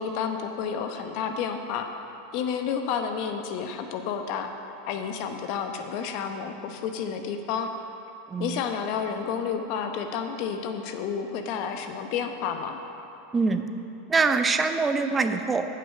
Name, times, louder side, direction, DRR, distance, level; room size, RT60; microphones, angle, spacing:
voice 1, 0.0-1.9 2.3-4.5 4.9-7.7 8.4-12.8, left 7 dB, 55° left, 6 dB, 0.8 m, -30 dB
voice 2, 8.3-8.6 13.3-13.6 14.1-15.7, right 4 dB, 20° right, 8 dB, 0.5 m, -24 dB
8.6 x 5.6 x 6.6 m, 2.8 s
hypercardioid pair, 115°, 0 cm